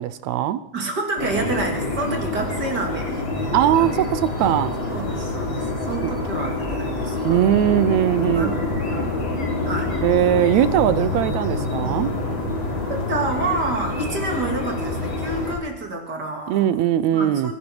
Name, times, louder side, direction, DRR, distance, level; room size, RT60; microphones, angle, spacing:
voice 1, 0.0-0.6 3.5-4.8 7.2-8.6 10.0-12.1 16.5-17.5, right 11 dB, 75° right, 14 dB, 1.9 m, -20 dB
voice 2, 0.7-3.5 3.8-3.9 4.3-4.6 4.9-7.5 8.2-10.0 12.9-16.8 17.1-17.5, right 3 dB, 35° right, 2 dB, 3.1 m, -29 dB
sound 1, 1.2-15.5, left 2 dB, 40° left, 3.8 m, -26 dB
23.0 x 11.5 x 4.7 m, 0.82 s
omnidirectional pair, 3.4 m